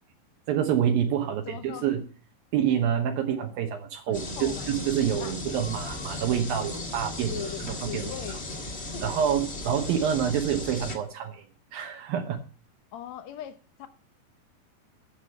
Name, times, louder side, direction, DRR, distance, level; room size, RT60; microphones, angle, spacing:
voice 1, 0.5-2.0 2.5-8.1 9.0-11.4 11.7-12.4, right 9 dB, 75° right, 3 dB, 2.8 m, -27 dB
voice 2, 1.2-1.9 4.1-4.7 5.2-5.7 7.1-8.4 8.9-9.2 10.2-10.4 12.9-13.9, left 10 dB, 75° left, 9 dB, 1.6 m, -40 dB
sound 1, 4.1-11.0, left 2 dB, 30° left, 1.2 m, -36 dB
12.0 x 7.5 x 7.8 m, 0.42 s
omnidirectional pair, 4.3 m